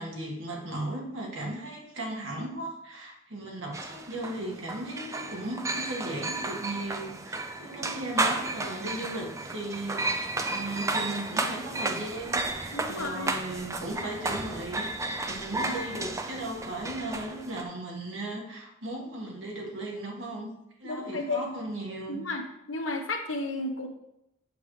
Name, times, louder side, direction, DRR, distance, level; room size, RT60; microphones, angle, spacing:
voice 1, 0.0-20.5 20.8-22.2, right 1 dB, 75° right, -1 dB, 1.6 m, -36 dB
sound 1, 3.7-17.6, right 2 dB, 15° right, 0.4 m, -33 dB
voice 2, 12.7-13.3 20.8-21.5 22.1-22.4 22.7-23.9, left 2 dB, 85° left, 3 dB, 1.1 m, -32 dB
7.0 x 6.4 x 3.1 m, 0.83 s
head